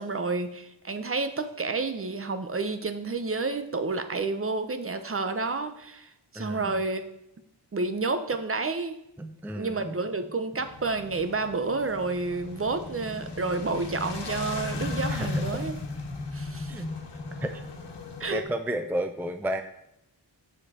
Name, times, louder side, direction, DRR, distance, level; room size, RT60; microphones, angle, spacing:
voice 1, 0.0-7.0 7.7-9.0 9.5-15.8 16.3-16.7 18.2-18.4, right 3 dB, 30° right, 9 dB, 0.7 m, -30 dB
voice 2, 6.4-6.8 9.2-9.9 15.1-15.4 16.7-16.9 17.4-17.6 18.3-19.6, right 1 dB, 5° right, 7 dB, 0.5 m, -32 dB
sound 1, 10.6-18.4, left 3 dB, 75° left, 1.5 m, -36 dB
7.5 x 6.7 x 4.2 m, 0.83 s
wide cardioid pair, 110°, 42 cm